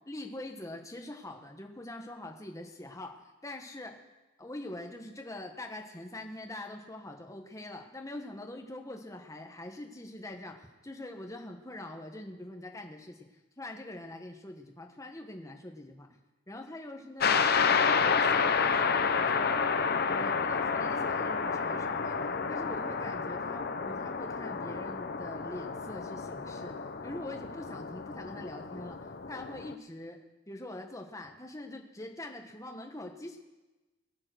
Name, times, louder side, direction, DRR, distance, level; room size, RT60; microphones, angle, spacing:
voice 1, 0.1-3.1 3.4-3.9 4.4-13.3 13.6-16.2 16.5-17.5 17.8-19.6 20.0-22.2 22.5-26.7 27.0-30.2 30.5-33.4, left 1 dB, 15° left, 3 dB, 1.3 m, -43 dB
sound 1, 17.2-29.7, left 5 dB, 50° left, 0.7 m, -30 dB
21.5 x 7.7 x 6.3 m, 1.1 s
head